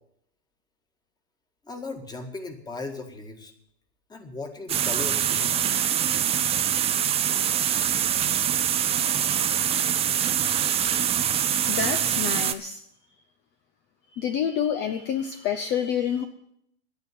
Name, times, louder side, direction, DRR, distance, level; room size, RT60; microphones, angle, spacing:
voice 1, 1.6-3.5 4.1-5.7, left 3 dB, 15° left, 6 dB, 1.8 m, -37 dB
sound 1, 4.7-12.5, right 9 dB, 20° right, 0.7 m, -24 dB
voice 2, 11.7-12.8 14.1-16.2, left 8 dB, 35° left, 8 dB, 0.8 m, -28 dB
10.5 x 9.0 x 9.8 m, 0.75 s
supercardioid pair, 135°, 30 cm